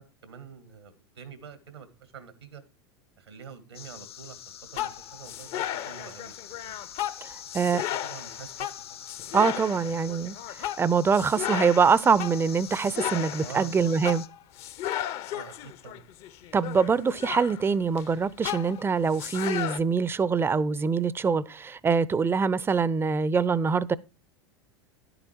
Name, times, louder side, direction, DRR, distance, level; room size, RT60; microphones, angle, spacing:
voice 1, 0.0-2.6 3.2-4.4 4.7-6.8 7.4-9.4 9.7-10.1 13.4-13.8 15.3-16.0, right 7 dB, 85° right, 2.1 m, -47 dB
sound 1, 3.7-14.3, left 9 dB, 75° left, 0.9 m, -45 dB
sound 2, 4.7-18.1 18.4-19.8, left 12 dB, 50° left, 0.8 m, -35 dB
voice 2, 7.2-7.8 9.3-14.2 16.5-24.0, right 5 dB, 15° right, 0.6 m, -24 dB
11.0 x 8.0 x 4.5 m
hypercardioid pair, 85°, 13 cm